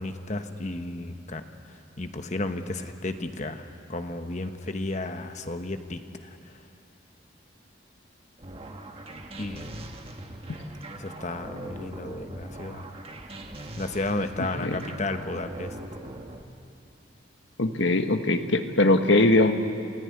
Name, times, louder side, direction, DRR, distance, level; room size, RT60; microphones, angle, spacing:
voice 1, 0.0-1.4 2.0-6.6 9.4-9.8 11.0-12.9 13.8-15.8, left 2 dB, 40° left, 7 dB, 1.1 m, -33 dB
sound 1, 8.4-16.4, right 1 dB, 30° right, 1.4 m, -41 dB
voice 2, 17.6-19.5, left 2 dB, 75° left, 6 dB, 1.4 m, -21 dB
27.5 x 15.0 x 9.7 m, 2.5 s
head